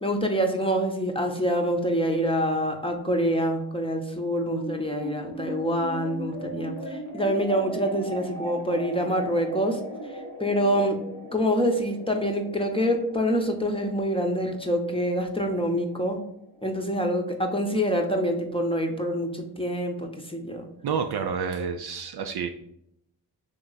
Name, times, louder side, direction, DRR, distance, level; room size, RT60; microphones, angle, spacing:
voice 1, 0.0-9.8 10.4-11.0 11.3-16.2 16.6-20.7, equal, 10° left, 2 dB, 0.8 m, -26 dB
sound 1, 4.5-17.1, equal, 80° left, 1.2 m, -39 dB
voice 2, 20.8-22.5, right 6 dB, 55° right, 6 dB, 0.5 m, -29 dB
3.3 x 3.0 x 4.0 m, 0.75 s
supercardioid pair, 40°, 50 cm